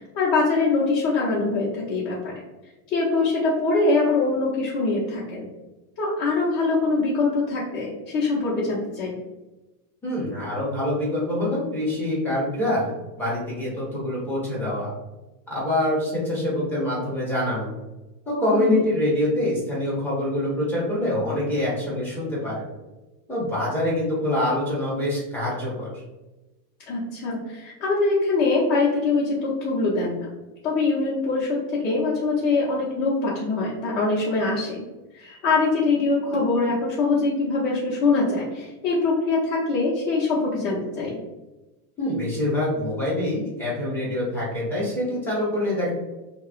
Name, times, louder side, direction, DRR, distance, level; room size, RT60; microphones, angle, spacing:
voice 1, 0.0-2.3 2.9-5.5 6.0-9.2 18.5-18.8 26.9-30.3 30.6-34.8 35.1-41.2, left 3 dB, 60° left, -7 dB, 0.9 m, -23 dB
voice 2, 10.0-14.9 15.5-17.7 18.3-22.6 23.3-25.9 42.0-45.9, left 1 dB, 5° left, -7 dB, 0.3 m, -25 dB
2.9 x 2.3 x 2.4 m, 1.1 s
supercardioid pair, 145°, 49 cm